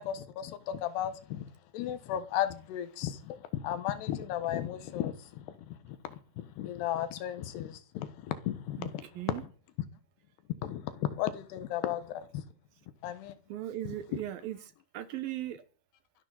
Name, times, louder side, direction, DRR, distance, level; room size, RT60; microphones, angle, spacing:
voice 1, 0.0-1.4 1.7-9.0 10.6-12.4 13.0-13.3, left 11 dB, 90° left, 3.3 m, -35 dB
voice 2, 13.5-14.6 14.9-15.6, right 13 dB, 70° right, 2.7 m, -37 dB
24.0 x 11.5 x 4.0 m
omnidirectional pair, 4.6 m